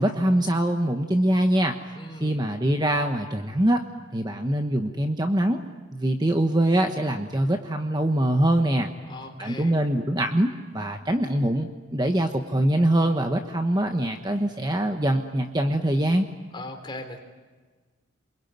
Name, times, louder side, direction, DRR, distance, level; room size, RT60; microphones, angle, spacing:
voice 1, 0.0-1.8 2.2-3.8 4.1-5.6 5.9-8.9 9.4-16.3, right 1 dB, 20° right, 5 dB, 1.1 m, -23 dB
voice 2, 1.9-2.5 9.1-9.7 16.5-17.2, left 2 dB, 20° left, 4 dB, 3.5 m, -39 dB
28.0 x 22.5 x 9.4 m, 1.4 s
head